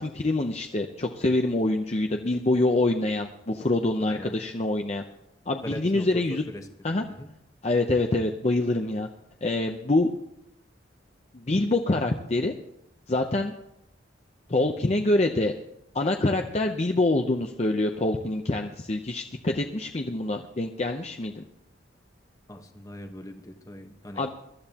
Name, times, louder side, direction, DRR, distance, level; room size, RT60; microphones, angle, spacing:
voice 1, 0.0-5.0 5.5-6.4 6.8-7.0 7.6-9.1 9.4-10.1 11.3-12.5 13.1-13.5 14.5-15.5 15.9-21.4 24.2-24.3, left 2 dB, 35° left, 4 dB, 0.7 m, -25 dB
voice 2, 5.6-7.3 22.5-24.2, left 1 dB, 20° left, 5 dB, 1.2 m, -41 dB
22.5 x 12.0 x 2.9 m, 0.81 s
head